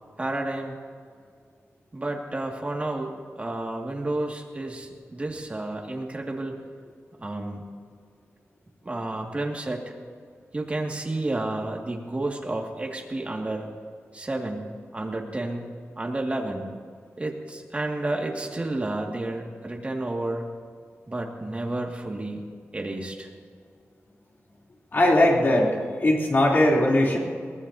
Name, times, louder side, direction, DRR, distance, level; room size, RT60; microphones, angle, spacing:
voice 1, 0.2-0.8 1.9-6.5 7.2-7.6 8.8-9.9 10.5-13.7 14.1-15.7 16.0-16.6 17.2-20.5 21.1-22.4 22.7-23.3, right 2 dB, 25° right, 0 dB, 2.1 m, -31 dB
voice 2, 24.9-27.2, left 1 dB, 45° left, -2 dB, 3.3 m, -20 dB
22.5 x 19.0 x 2.8 m, 2.1 s
wide cardioid pair, 115°, 5 cm